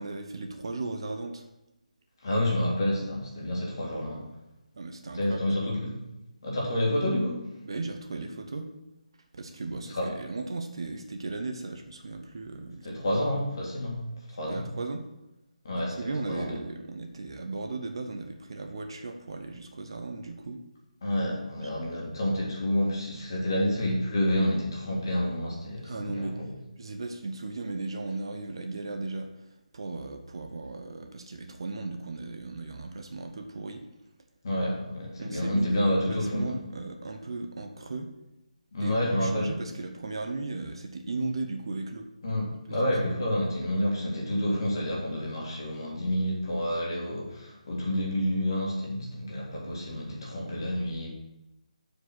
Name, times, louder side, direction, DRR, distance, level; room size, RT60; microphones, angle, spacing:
voice 1, 0.0-1.4 4.8-5.4 7.6-8.7 9.3-13.2 14.5-15.0 16.0-20.6 25.8-26.4 26.8-29.3 29.7-33.8 35.2-38.1 38.8-42.1 43.0-43.2, right 3 dB, 40° right, 5 dB, 0.6 m, -36 dB
voice 2, 2.2-4.3 5.1-6.0 6.4-7.5 9.9-10.2 12.8-14.7 15.6-16.6 21.0-26.5 34.4-36.6 38.7-39.5 42.2-51.1, left 1 dB, 35° left, -3 dB, 2.1 m, -29 dB
6.7 x 4.8 x 6.1 m, 0.92 s
hypercardioid pair, 175°, 4 cm